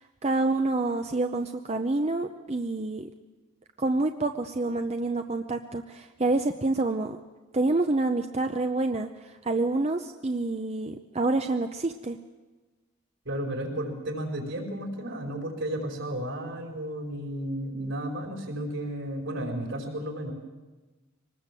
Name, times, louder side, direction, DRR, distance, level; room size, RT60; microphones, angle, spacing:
voice 1, 0.2-3.1 3.8-7.2 7.5-12.2, right 2 dB, 30° right, 6 dB, 0.7 m, -27 dB
voice 2, 13.3-20.3, right 1 dB, 70° right, 1 dB, 5.2 m, -33 dB
24.5 x 19.5 x 7.7 m, 1.2 s
head